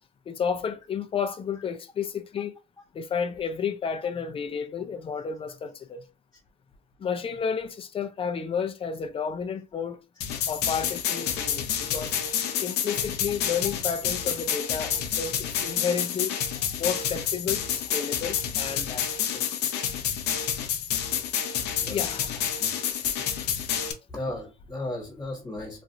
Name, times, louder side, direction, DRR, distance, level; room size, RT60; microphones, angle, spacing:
voice 1, 0.3-2.5 2.9-6.0 7.0-10.0 10.5-12.2 12.6-16.4 16.8-19.6 21.9-22.5 23.0-23.2, left 6 dB, 35° left, 0.5 m, -31 dB
sound 1, 10.2-23.9, left 9 dB, 80° left, 0.6 m, -29 dB
voice 2, 22.6-22.9 24.1-25.8, left 1 dB, 15° left, 1.1 m, -35 dB
3.1 x 2.4 x 2.7 m
cardioid pair, 110°, 17 cm